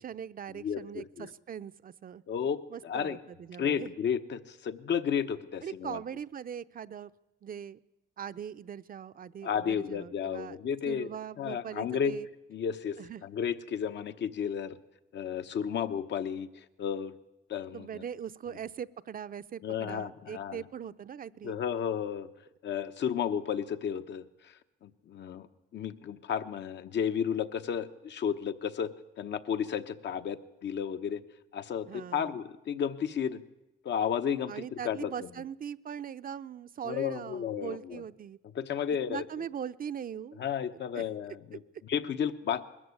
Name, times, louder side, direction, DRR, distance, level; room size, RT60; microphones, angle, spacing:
voice 1, 0.0-2.2 2.7-3.9 5.6-7.1 7.4-7.8 8.2-10.6 10.9-12.3 13.0-13.2 17.7-21.6 31.9-32.4 34.5-38.4 39.1-40.4 40.9-41.0, right 8 dB, 45° right, 13 dB, 0.6 m, -41 dB
voice 2, 0.5-1.3 2.3-3.2 3.6-6.0 9.4-11.1 11.4-12.2 12.5-14.8 15.1-17.1 17.5-18.0 19.6-20.6 21.4-22.3 22.6-25.5 25.7-28.9 29.2-31.2 31.5-33.4 33.8-35.1 36.9-38.0 38.5-39.2 40.4-42.6, left 8 dB, 65° left, 10 dB, 1.1 m, -33 dB
21.0 x 13.5 x 9.7 m, 0.95 s
cardioid pair, 90°, 20 cm